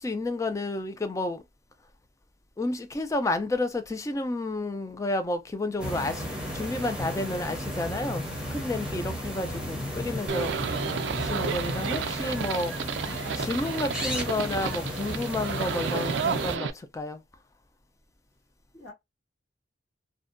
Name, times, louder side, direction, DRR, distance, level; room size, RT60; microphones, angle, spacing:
voice 1, 0.0-1.4 2.6-8.2 8.5-10.5 11.2-12.7 13.0-17.2, left 2 dB, 15° left, 0.3 m, -31 dB
sound 1, 5.8-16.6, equal, 5° right, 0.6 m, -34 dB
voice 2, 9.2-10.0 18.7-18.9, left 1 dB, 75° left, 1.6 m, -49 dB
Livestock farm animals working animals, 10.3-16.7, right 6 dB, 70° right, 0.3 m, -32 dB
2.6 x 2.1 x 2.4 m
head